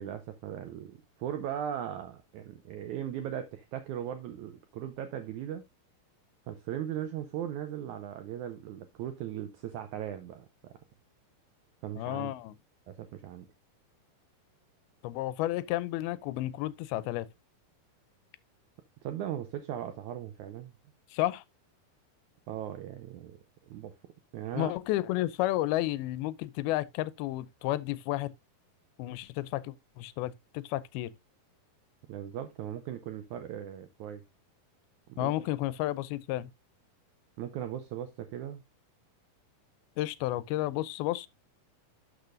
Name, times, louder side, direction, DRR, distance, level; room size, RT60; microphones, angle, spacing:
voice 1, 0.0-5.7 6.5-10.7 11.8-12.3 12.9-13.5 19.0-20.7 22.5-23.9 24.3-24.7 32.1-34.2 35.1-35.4 37.4-38.6, right 10 dB, 80° right, 1.7 m, -38 dB
voice 2, 12.0-12.6 15.0-17.3 21.1-21.4 24.5-28.3 29.0-31.1 35.2-36.5 40.0-41.3, left 16 dB, 85° left, 2.5 m, -32 dB
12.0 x 6.6 x 2.5 m
omnidirectional pair, 4.3 m